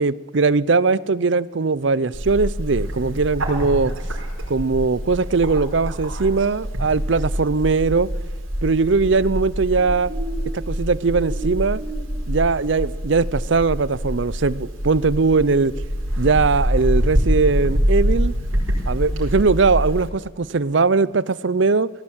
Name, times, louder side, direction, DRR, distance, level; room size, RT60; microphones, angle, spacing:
voice 1, 0.0-3.9 4.5-8.1 8.6-10.1 10.5-11.8 12.3-15.7 16.2-18.3 18.9-21.9, right 4 dB, 60° right, 20 dB, 0.6 m, -20 dB
Bird, 2.1-20.1, equal, 85° right, 5.1 m, -25 dB
18.5 x 16.5 x 8.8 m, 1.4 s
head